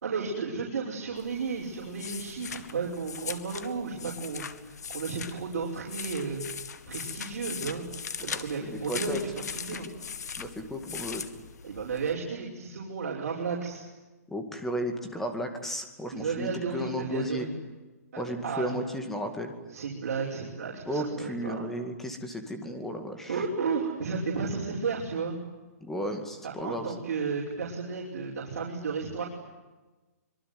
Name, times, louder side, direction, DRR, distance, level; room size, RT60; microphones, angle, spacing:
voice 1, 0.0-4.4 4.9-6.4 6.9-7.9 8.2-9.9 11.6-13.8 16.1-17.5 18.1-18.8 19.7-21.7 23.3-25.4 26.4-29.2, right 5 dB, 65° right, -3 dB, 5.9 m, -33 dB
sound 1, 1.2-12.1, left 6 dB, 90° left, 2.1 m, -40 dB
voice 2, 8.6-9.2 9.7-9.9 10.4-11.2 14.3-17.5 18.2-19.5 20.9-23.4 25.8-26.9, equal, 5° left, 6 dB, 2.1 m, -34 dB
25.5 x 23.5 x 9.5 m, 1.2 s
hypercardioid pair, 175°, 9 cm